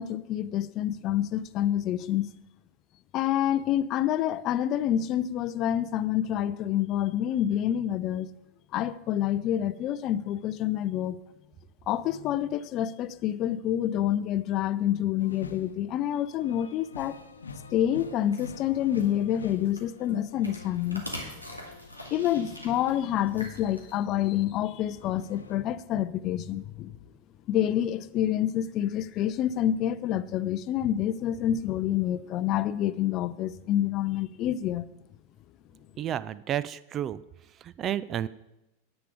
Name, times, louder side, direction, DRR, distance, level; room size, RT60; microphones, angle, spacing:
voice 1, 0.0-2.3 3.1-8.3 8.7-11.2 11.9-17.2 17.7-21.1 22.1-27.0 27.5-34.9, left 11 dB, 35° left, 0.5 m, -27 dB
sound 1, 15.2-23.9 24.3-25.6, left 4 dB, 75° left, 0.9 m, -47 dB
sound 2, 18.3-23.9, left 1 dB, 90° right, 2.2 m, -44 dB
voice 2, 36.0-37.2 37.6-38.3, right 10 dB, 30° right, 0.4 m, -31 dB
10.0 x 9.0 x 5.1 m
figure-of-eight pair, 90°, 0 cm